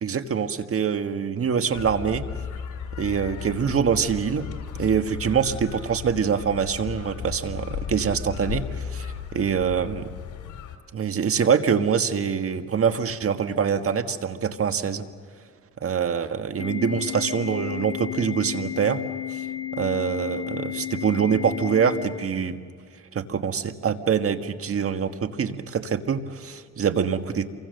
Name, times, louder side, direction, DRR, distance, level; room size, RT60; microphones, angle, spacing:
voice 1, 0.0-2.2 3.0-4.5 4.7-10.1 10.9-15.0 15.8-19.0 19.3-19.5 19.8-22.6 23.1-27.5, right 7 dB, 50° right, 8 dB, 1.6 m, -25 dB
sound 1, 1.7-10.8, left 8 dB, 80° left, 2.9 m, -35 dB
Organ, 16.6-22.6, left 11 dB, 20° left, 2.6 m, -33 dB
28.0 x 24.0 x 6.7 m, 2.1 s
cardioid pair, 90°, 30 cm